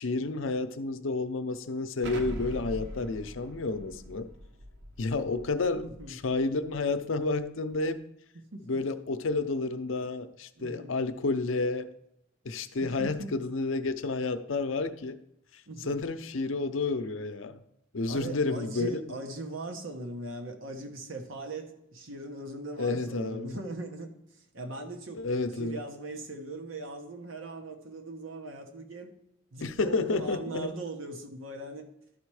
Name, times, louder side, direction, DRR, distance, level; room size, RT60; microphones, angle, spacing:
voice 1, 0.0-4.3 5.0-8.0 8.7-11.9 12.4-15.2 15.8-17.6 17.9-19.0 22.8-23.6 25.1-25.8 29.6-30.7, left 3 dB, 80° left, 10 dB, 0.6 m, -30 dB
Explosion, 2.0-6.7, equal, 60° right, 1.0 m, -43 dB
voice 2, 5.8-6.2 8.3-8.7 10.6-11.0 12.8-13.4 15.7-16.0 18.1-25.3 25.5-29.1 29.5-31.9, right 2 dB, 90° right, 4 dB, 1.2 m, -40 dB
12.0 x 4.3 x 4.8 m, 0.79 s
head